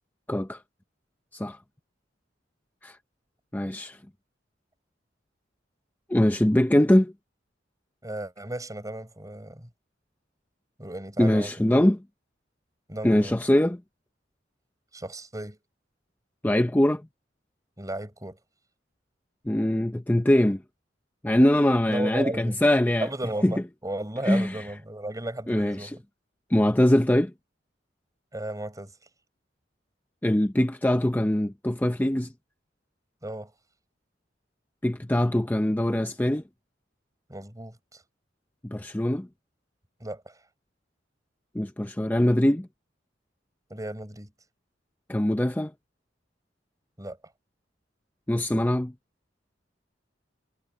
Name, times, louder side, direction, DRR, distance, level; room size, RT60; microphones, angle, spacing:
voice 1, 0.3-0.6 1.3-1.6 2.8-3.0 3.5-4.0 6.1-7.1 11.2-12.0 13.0-13.8 16.4-17.0 19.5-20.6 21.2-23.1 23.4-23.5 24.2-24.6 25.5-25.9 26.5-27.3 30.2-32.3 34.8-36.4 38.6-39.3 41.5-42.7 45.1-45.7 48.3-48.9, left 1 dB, 10° left, 0.6 m, -22 dB
voice 2, 8.0-9.7 10.8-11.5 12.9-13.4 14.9-15.6 17.8-18.4 21.9-22.6 23.0-26.0 28.3-28.9 33.2-33.5 37.3-38.0 40.0-40.4 43.7-44.3 47.0-47.2, right 1 dB, 20° right, 7.1 m, -35 dB
head